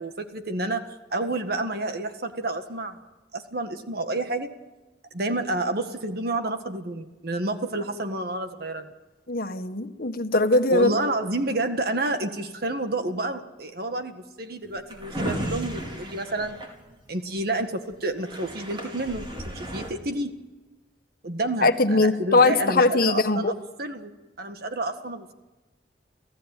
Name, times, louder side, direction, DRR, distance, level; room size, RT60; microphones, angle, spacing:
voice 1, 0.0-3.0 3.3-4.5 5.1-8.9 10.7-16.6 17.1-20.3 21.2-24.1 24.4-25.3, right 2 dB, 60° right, 7 dB, 1.7 m, -29 dB
voice 2, 9.3-10.9 21.6-23.5, left 2 dB, 55° left, 8 dB, 1.5 m, -21 dB
Drawer open or close, 14.6-17.4 17.9-18.0 18.2-19.9, equal, 30° right, 4.8 m, -34 dB
29.5 x 16.0 x 9.1 m, 1.2 s
head